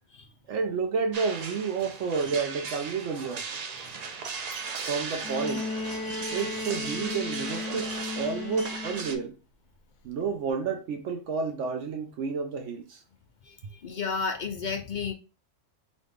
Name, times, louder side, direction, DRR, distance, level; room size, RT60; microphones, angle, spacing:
voice 1, 0.5-3.5 4.8-5.7 6.3-9.3 10.0-13.0, right 5 dB, 75° right, 1.0 m, -30 dB
sound 1, 1.1-9.1, right 5 dB, 55° right, 0.4 m, -37 dB
Bowed string instrument, 5.2-9.2 10.5-10.6, left 3 dB, 90° left, 1.1 m, -35 dB
voice 2, 13.8-15.1, left 5 dB, 55° left, 0.5 m, -32 dB
4.0 x 2.5 x 3.4 m
omnidirectional pair, 1.3 m